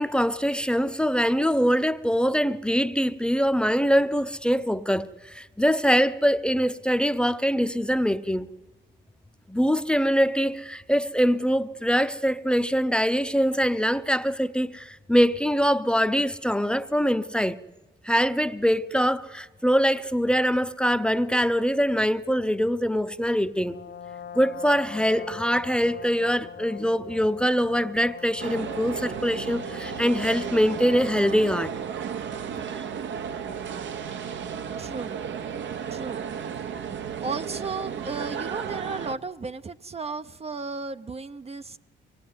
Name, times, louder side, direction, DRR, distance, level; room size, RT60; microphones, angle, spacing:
voice 1, 0.0-8.5 9.5-17.6 18.0-23.8 24.3-31.7, equal, 5° left, 0.7 m, -23 dB
Brass instrument, 23.6-31.4, left 8 dB, 55° left, 1.2 m, -42 dB
sound 1, 28.4-39.2, right 7 dB, 70° right, 1.2 m, -34 dB
voice 2, 34.8-35.2 35.9-36.2 36.5-36.7 37.2-41.8, right 4 dB, 30° right, 0.7 m, -34 dB
23.5 x 18.5 x 9.5 m
cardioid pair, 90°, 20 cm